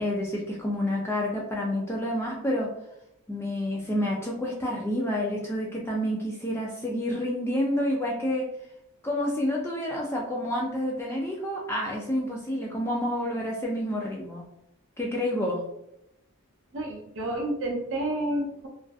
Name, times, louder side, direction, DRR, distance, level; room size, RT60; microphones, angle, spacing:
voice 1, 0.0-2.7 3.3-8.5 9.0-14.4 15.0-15.6, left 1 dB, 10° left, -2 dB, 0.3 m, -29 dB
voice 2, 16.7-18.7, right 1 dB, 55° right, 0 dB, 0.6 m, -30 dB
2.5 x 2.4 x 2.3 m, 0.81 s
head